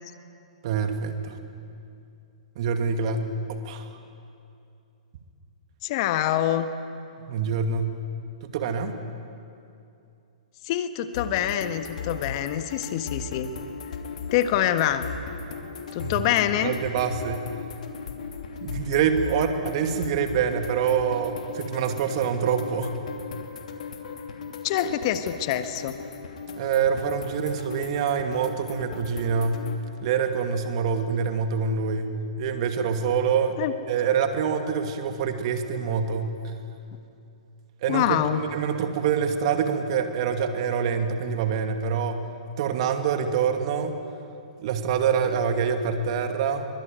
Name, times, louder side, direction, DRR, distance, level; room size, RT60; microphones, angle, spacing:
voice 1, 0.6-1.4 2.6-4.0 7.3-8.0 8.4-8.9 16.0-16.3 16.6-17.5 18.6-23.0 26.6-29.7 30.0-33.6 33.9-36.5 37.8-42.3 42.6-44.0 44.6-46.7, right 6 dB, 50° right, 7 dB, 2.5 m, -26 dB
voice 2, 5.8-6.7 10.6-13.5 14.3-15.1 15.9-16.7 24.6-26.0 33.6-33.7 37.9-38.4, left 11 dB, 45° left, 10 dB, 1.4 m, -25 dB
sound 1, 11.1-29.8, left 5 dB, 75° left, 3.0 m, -37 dB
24.0 x 22.5 x 9.3 m, 2.6 s
hypercardioid pair, 135°, 4 cm